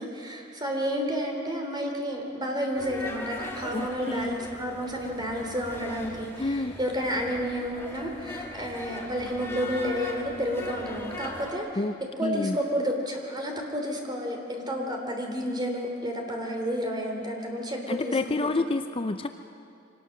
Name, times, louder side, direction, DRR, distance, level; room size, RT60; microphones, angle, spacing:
voice 1, 0.0-11.7 12.2-18.2, equal, 20° right, 1 dB, 3.1 m, -31 dB
sound 1, 2.7-11.5, left 1 dB, 10° left, 2.0 m, -40 dB
voice 2, 3.7-4.3 6.4-6.7 11.8-11.9 12.2-12.6 17.9-19.3, left 2 dB, 30° left, 8 dB, 0.5 m, -28 dB
24.5 x 18.5 x 6.5 m, 2.4 s
head